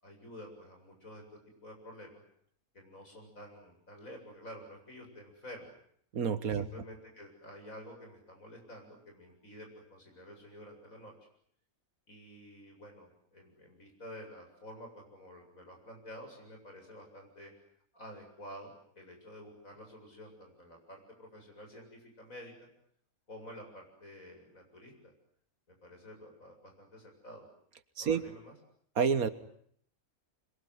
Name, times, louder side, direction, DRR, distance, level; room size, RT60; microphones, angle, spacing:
voice 1, 0.0-1.2 1.6-2.2 2.7-5.8 6.4-11.1 12.1-17.5 17.9-22.7 23.3-25.1 25.7-27.5 28.0-28.5, equal, 70° left, 2 dB, 8.2 m, -50 dB
voice 2, 6.1-6.7 28.0-28.2 29.0-29.3, right 6 dB, 80° right, 12 dB, 1.9 m, -28 dB
26.5 x 23.0 x 9.5 m, 0.66 s
omnidirectional pair, 1.5 m